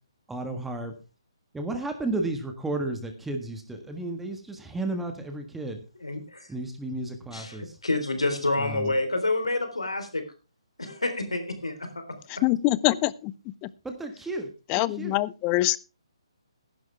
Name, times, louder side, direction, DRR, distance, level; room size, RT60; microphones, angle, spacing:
voice 1, 0.3-0.9 1.5-5.8 6.5-7.6 8.6-8.9 13.8-14.5 14.7-15.2, right 2 dB, 5° right, 5 dB, 1.6 m, -33 dB
voice 2, 6.0-6.5 7.3-10.2 10.8-12.0, left 2 dB, 90° left, 7 dB, 3.7 m, -28 dB
voice 3, 12.4-13.3 13.6-13.7 14.7-15.8, left 18 dB, 20° left, 21 dB, 0.5 m, -24 dB
15.0 x 11.5 x 3.4 m, 0.31 s
figure-of-eight pair, 140°, 3 cm